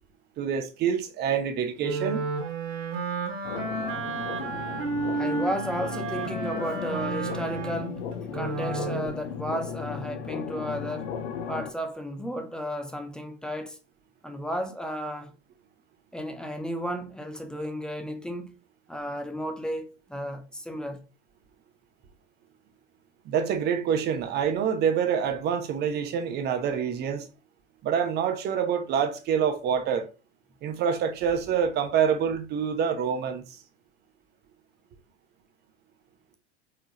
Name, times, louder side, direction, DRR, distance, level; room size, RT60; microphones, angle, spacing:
voice 1, 0.4-2.3 23.3-27.3 27.8-30.1 30.6-33.4, right 7 dB, 25° right, 0.9 m, -26 dB
Wind instrument woodwind instrument, 1.8-9.2, right 4 dB, 40° right, 1.7 m, -32 dB
sound 1, 3.4-11.7, left 7 dB, 40° left, 0.7 m, -36 dB
voice 2, 5.1-8.0 8.3-11.1 11.5-13.8 14.2-15.3 16.1-18.5 18.9-21.0, equal, ahead, 0.5 m, -33 dB
4.9 x 3.7 x 2.9 m
figure-of-eight pair, 95°, 37 cm